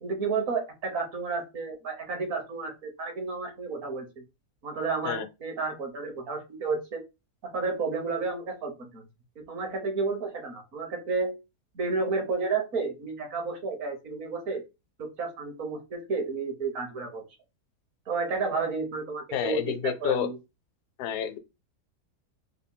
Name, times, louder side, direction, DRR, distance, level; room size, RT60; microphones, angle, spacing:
voice 1, 0.0-4.2 4.6-7.0 7.5-9.0 9.5-11.4 11.7-14.6 15.0-17.2 18.1-20.4, right 4 dB, 60° right, 1.3 m, -31 dB
voice 2, 19.3-20.3 21.0-21.4, left 9 dB, 85° left, 1.2 m, -29 dB
3.6 x 2.2 x 3.7 m
omnidirectional pair, 1.7 m